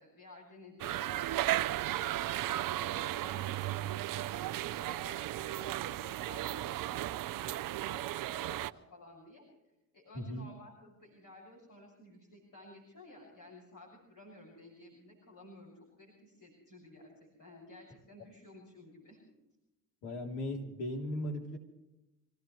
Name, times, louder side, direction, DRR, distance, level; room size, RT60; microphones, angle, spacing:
voice 1, 0.0-1.7 2.0-5.2 5.5-7.5 7.8-9.4 9.9-19.3, left 2 dB, 50° left, -3 dB, 7.0 m, -55 dB
sound 1, 0.8-8.7, right 14 dB, 55° right, 0.7 m, -35 dB
voice 2, 10.1-10.5 20.0-21.6, left 1 dB, 70° left, 1 dB, 3.5 m, -37 dB
26.5 x 16.0 x 3.3 m, 0.93 s
hypercardioid pair, 55°, 40 cm